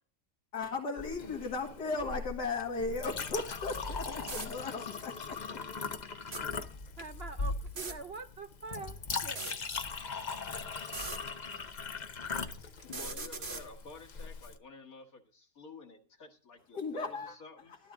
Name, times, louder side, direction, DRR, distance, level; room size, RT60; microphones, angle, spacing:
voice 1, 0.5-5.1 5.5-5.6 16.7-17.4, left 3 dB, 80° left, 2.6 m, -36 dB
Chink clink, 1.0-14.6, left 4 dB, 40° left, 0.6 m, -40 dB
sound 1, 3.9-4.0 4.2-4.5 6.2-6.4 7.7-8.0 9.2-9.6 10.8-11.2 12.8-13.6, right 3 dB, 35° right, 1.3 m, -40 dB
voice 2, 6.0-6.6 7.0-9.4 12.4-12.5, right 4 dB, 65° right, 0.6 m, -45 dB
voice 3, 12.8-17.8, left 3 dB, 60° left, 2.0 m, -51 dB
13.0 x 12.5 x 3.7 m
omnidirectional pair, 1.8 m